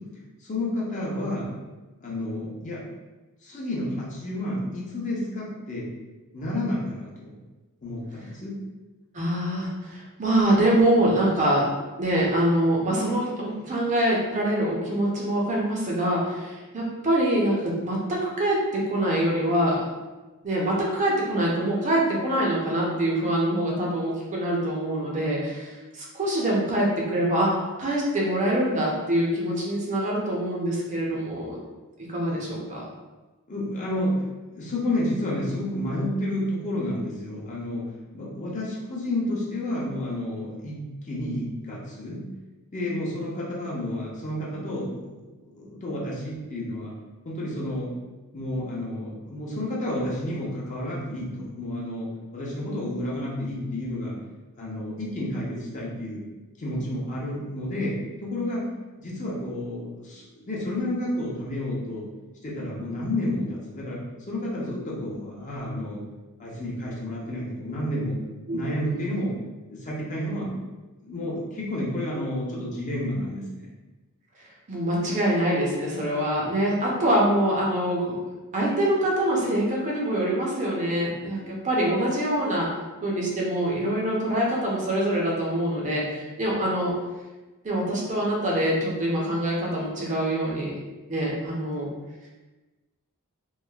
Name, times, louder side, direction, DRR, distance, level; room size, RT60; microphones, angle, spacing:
voice 1, 0.4-1.5 2.0-2.8 3.4-5.9 6.3-7.4 7.8-8.5 32.3-32.5 33.5-34.2 34.5-37.9 38.1-42.2 42.7-45.2 45.5-46.9 47.2-47.9 48.3-54.2 54.6-56.2 56.6-58.7 59.0-62.0 62.4-64.0 64.3-66.0 66.4-68.2 68.5-69.3 69.7-70.5 71.0-73.7, left 1 dB, 35° left, -5 dB, 0.7 m, -30 dB
voice 2, 9.1-11.7 12.0-19.8 20.4-31.6 32.1-32.8 68.5-69.1 74.7-78.2 78.5-82.7 83.0-86.9 87.6-90.7 91.1-91.9, right 1 dB, 35° right, -3 dB, 0.6 m, -24 dB
3.0 x 2.5 x 2.3 m, 1.2 s
head